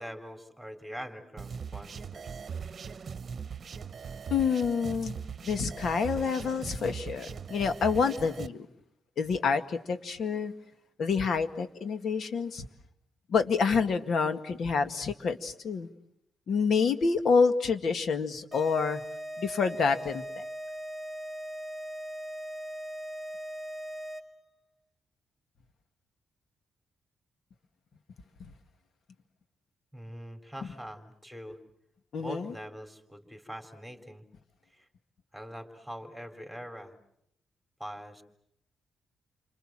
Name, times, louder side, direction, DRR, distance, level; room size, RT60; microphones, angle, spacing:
voice 1, 0.0-2.4 29.9-31.6 32.2-34.2 34.7-34.9 35.3-36.9 37.8-38.2, equal, ahead, 6 dB, 3.9 m, -43 dB
sound 1, 1.4-8.5, right 6 dB, 45° right, 1.0 m, -40 dB
voice 2, 4.3-5.2 5.4-8.7 9.2-10.5 11.0-12.6 13.3-15.9 16.5-19.0 19.4-20.4 32.1-32.5, left 5 dB, 65° left, 8 dB, 2.0 m, -28 dB
sound 2, 18.5-24.5, right 1 dB, 20° left, 3.1 m, -39 dB
29.0 x 26.0 x 7.6 m, 0.76 s
cardioid pair, 115°, 0 cm